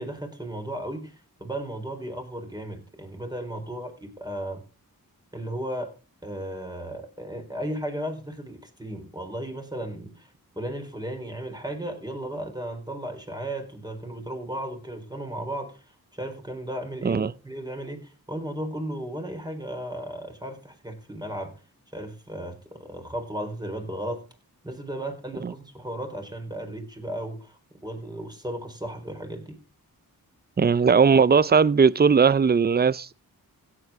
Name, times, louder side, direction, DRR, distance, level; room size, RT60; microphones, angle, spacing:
voice 1, 0.0-4.6 5.3-6.0 6.2-10.3 10.6-21.6 21.9-24.2 24.6-29.6, right 1 dB, 10° right, 4.0 m, -35 dB
voice 2, 30.6-33.1, right 6 dB, 25° right, 0.5 m, -19 dB
17.0 x 8.2 x 3.6 m
cardioid pair, 60°, 37 cm